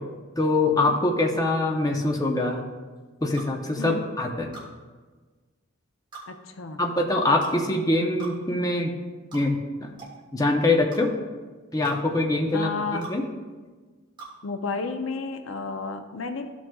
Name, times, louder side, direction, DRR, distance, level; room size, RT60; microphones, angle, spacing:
voice 1, 0.4-2.6 3.2-4.5 6.8-8.9 9.3-10.0 10.3-11.1 11.7-13.3, left 2 dB, 15° left, 2 dB, 0.7 m, -24 dB
sound 1, 3.3-3.5 4.5-4.7 6.1-6.3 7.4-7.6 8.2-8.4 9.3-9.5 10.0-10.2 10.9-11.0 11.8-12.0 13.0-13.2 14.2-14.3, right 3 dB, 20° right, 1.9 m, -41 dB
voice 2, 6.3-6.8 12.5-13.0 14.4-16.5, left 4 dB, 70° left, 7 dB, 0.6 m, -32 dB
14.0 x 6.2 x 2.3 m, 1.4 s
head